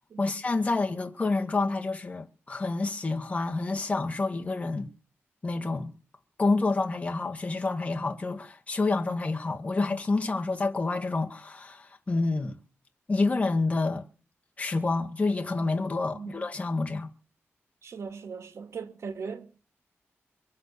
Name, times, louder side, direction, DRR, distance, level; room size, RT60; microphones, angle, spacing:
voice 1, 0.2-4.9 5.4-5.9 6.4-12.6 13.1-14.1 14.6-17.1, left 3 dB, 30° left, 2.1 m, -28 dB
voice 2, 17.8-19.5, right 5 dB, 80° right, 2.4 m, -39 dB
24.0 x 8.1 x 7.0 m
wide cardioid pair, 115°, 5 cm